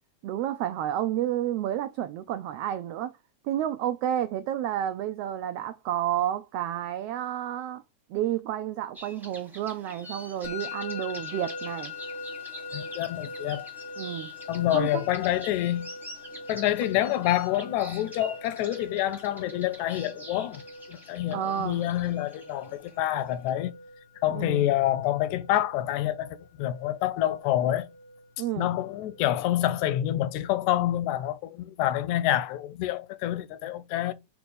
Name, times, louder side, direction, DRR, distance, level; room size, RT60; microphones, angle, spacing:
voice 1, 0.2-3.1 3.4-7.8 8.1-11.9 14.0-14.3 14.7-15.0 21.3-21.8 24.3-24.7 28.4-28.7, right 11 dB, 85° right, 1.3 m, -30 dB
sound 1, 8.9-23.5, right 1 dB, ahead, 0.5 m, -46 dB
Musical instrument, 10.4-29.3, left 3 dB, 65° left, 0.9 m, -43 dB
voice 2, 12.7-13.7 14.5-15.9 16.5-20.6 20.9-23.7 24.2-27.9 28.6-34.1, left 13 dB, 85° left, 2.0 m, -27 dB
6.1 x 3.0 x 5.3 m
omnidirectional pair, 3.3 m